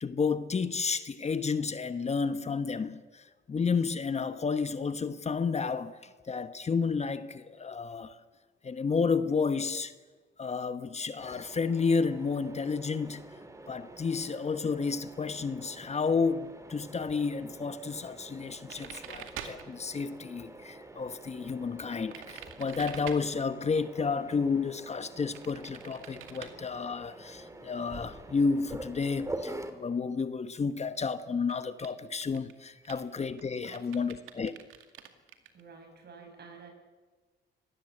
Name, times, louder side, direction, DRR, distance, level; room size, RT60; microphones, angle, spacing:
voice 1, 0.0-8.2 8.6-9.9 10.4-13.2 13.7-34.5, left 5 dB, 35° left, 1.1 m, -31 dB
Mechanisms, 11.2-29.7, right 1 dB, 15° right, 2.7 m, -46 dB
sound 1, 18.7-19.7 21.9-23.2 25.3-26.5 30.6-30.7 30.9-31.1 31.5-31.9 32.2-35.6, right 10 dB, 85° right, 2.1 m, -45 dB
voice 2, 33.6-34.5 35.5-36.7, right 4 dB, 55° right, 6.6 m, -51 dB
25.0 x 19.5 x 7.9 m
cardioid pair, 90°, 20 cm